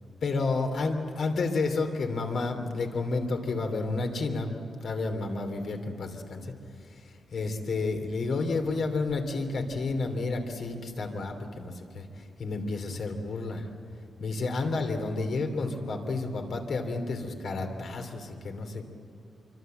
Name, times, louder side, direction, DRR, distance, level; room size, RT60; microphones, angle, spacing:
voice 1, 0.2-4.5 4.8-6.5 7.3-13.6 14.2-18.8, left 3 dB, 60° left, 5 dB, 3.0 m, -30 dB
26.0 x 24.5 x 7.9 m, 2.4 s
wide cardioid pair, 160°, 0 cm